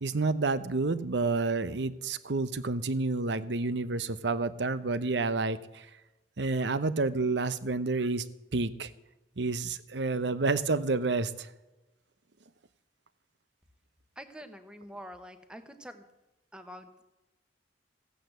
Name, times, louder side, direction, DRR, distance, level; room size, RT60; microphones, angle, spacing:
voice 1, 0.0-5.9 6.4-8.2 8.5-8.9 9.4-11.5, right 3 dB, 75° right, 14 dB, 0.8 m, -29 dB
voice 2, 14.2-16.0 16.5-17.0, equal, 5° right, 9 dB, 1.1 m, -46 dB
15.5 x 8.5 x 7.9 m, 1.0 s
head